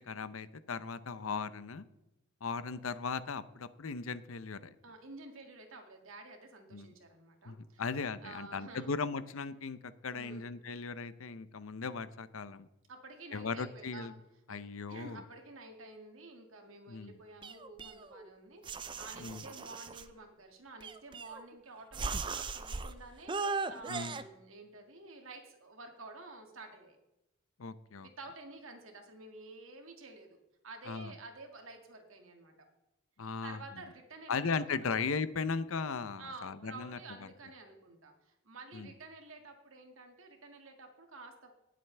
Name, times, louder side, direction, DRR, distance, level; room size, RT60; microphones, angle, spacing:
voice 1, 0.0-1.8 2.4-4.7 6.7-6.9 7.5-12.7 13.3-14.1 14.5-15.2 16.9-17.2 19.2-19.4 23.9-24.2 27.6-28.1 30.9-31.1 33.2-33.6 34.3-37.3 38.7-38.9, left 4 dB, 85° left, 14 dB, 0.7 m, -37 dB
voice 2, 4.8-7.8 8.2-8.9 10.1-10.4 12.9-14.1 14.5-14.6 14.9-27.0 28.0-30.4 30.6-32.5 33.4-34.5 34.8-35.0 36.2-41.5, right 3 dB, 80° right, 4 dB, 2.2 m, -51 dB
sound 1, 17.4-18.3 18.7-20.1 20.8-21.5 21.9-22.9 23.3-24.2, right 4 dB, 25° right, 0.5 m, -38 dB
19.0 x 7.6 x 3.4 m, 0.96 s
head